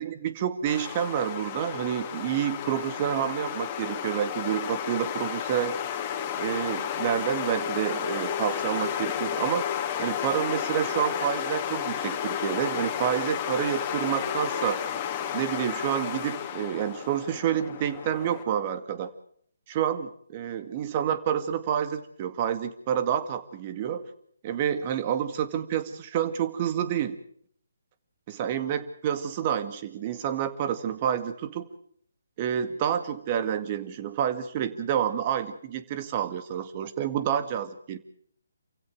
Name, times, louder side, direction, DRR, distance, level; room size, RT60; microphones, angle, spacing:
voice 1, 0.0-5.7 6.4-9.7 10.0-14.8 15.3-19.1 19.7-24.0 24.4-27.2 28.3-31.7 32.4-38.0, right 9 dB, 30° right, 11 dB, 2.0 m, -28 dB
sound 1, 0.7-18.4, left 9 dB, 25° left, 2.6 m, -32 dB
28.5 x 16.0 x 6.4 m, 0.62 s
figure-of-eight pair, 145°, 0 cm